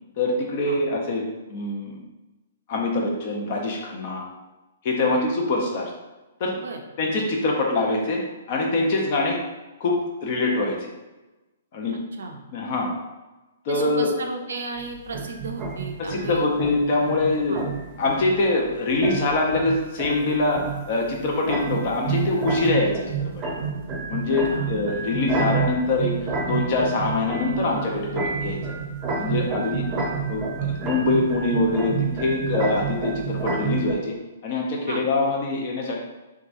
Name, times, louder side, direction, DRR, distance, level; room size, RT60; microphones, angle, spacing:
voice 1, 0.2-1.2 1.5-2.0 2.7-4.3 4.8-5.9 6.4-6.6 7.0-8.2 8.5-9.4 9.8-10.9 11.7-12.0 12.5-12.9 13.7-14.1 16.0-17.6 18.0-20.6 20.9-23.3 24.1-26.1 26.4-28.6 29.2-29.8 30.3-34.1 34.4-36.0, left 2 dB, 50° left, 0 dB, 0.6 m, -24 dB
voice 2, 13.7-16.4 17.5-17.7 24.5-24.7 29.9-30.1 34.9-35.0, right 3 dB, 75° right, 4 dB, 0.4 m, -34 dB
sound 1, 14.8-33.9, right 5 dB, 25° right, 0.6 m, -29 dB
2.9 x 2.3 x 2.5 m, 1.1 s
hypercardioid pair, 135°, 0 cm